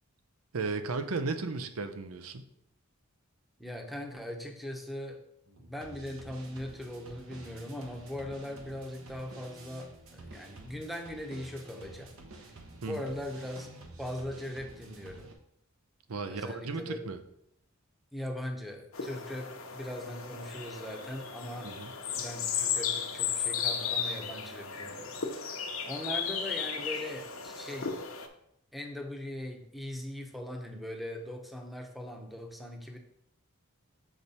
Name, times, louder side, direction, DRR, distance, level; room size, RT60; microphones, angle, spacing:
voice 1, 0.5-2.4 12.8-13.0 16.1-17.2 21.6-21.9, right 4 dB, 90° right, 9 dB, 0.6 m, -35 dB
voice 2, 3.6-5.2 5.6-12.1 12.8-13.7 14.0-15.3 16.3-17.1 18.1-21.7 22.0-27.9 28.7-33.0, left 1 dB, ahead, 3 dB, 0.8 m, -40 dB
sound 1, 5.5-15.3, right 2 dB, 75° right, 1.1 m, -50 dB
sound 2, 18.9-28.3, left 7 dB, 70° left, 0.8 m, -35 dB
7.0 x 4.6 x 4.1 m, 0.76 s
head